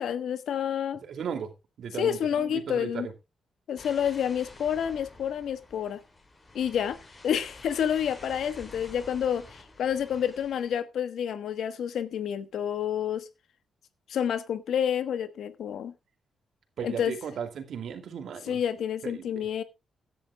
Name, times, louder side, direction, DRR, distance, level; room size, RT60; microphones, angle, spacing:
voice 1, 0.0-1.0 2.0-3.1 3.7-6.0 6.5-7.0 7.2-13.3 14.1-15.9 16.8-17.1 18.4-19.6, left 8 dB, 80° left, 1.2 m, -29 dB
voice 2, 1.0-1.5 1.8-3.1 16.8-18.6 19.0-19.5, right 7 dB, 75° right, 2.5 m, -36 dB
sound 1, 3.8-10.8, left 2 dB, 35° left, 4.8 m, -49 dB
16.5 x 10.5 x 2.3 m
supercardioid pair, 55°, 0 cm